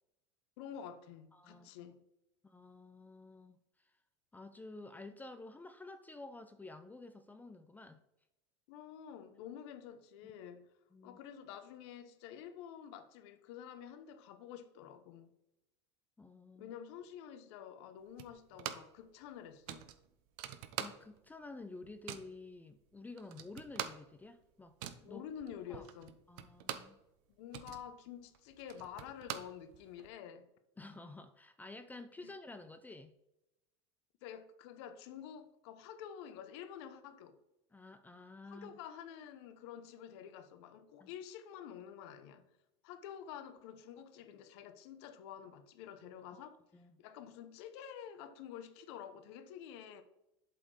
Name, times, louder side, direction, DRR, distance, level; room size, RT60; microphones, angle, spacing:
voice 1, 0.6-2.0 8.7-10.7 11.0-15.3 16.6-19.8 25.0-26.1 27.4-30.5 32.2-32.3 34.2-37.4 38.5-42.5 42.8-46.6 47.0-50.0, left 9 dB, 70° left, 0.9 m, -49 dB
voice 2, 1.3-1.9 2.4-3.9 4.3-8.0 10.2-10.3 10.9-11.2 16.2-16.7 20.8-25.2 25.7-25.8 26.3-27.0 30.8-33.2 37.7-38.7 41.0-41.1 46.3-46.4 46.7-47.0, left 3 dB, 10° left, 0.5 m, -51 dB
sound 1, 18.2-19.0 19.3-19.4 19.7-21.4 21.6-22.4 22.9-23.0 23.2-27.0 27.3-30.1, right 11 dB, 65° right, 0.8 m, -45 dB
7.8 x 4.3 x 4.8 m
supercardioid pair, 105°, 14 cm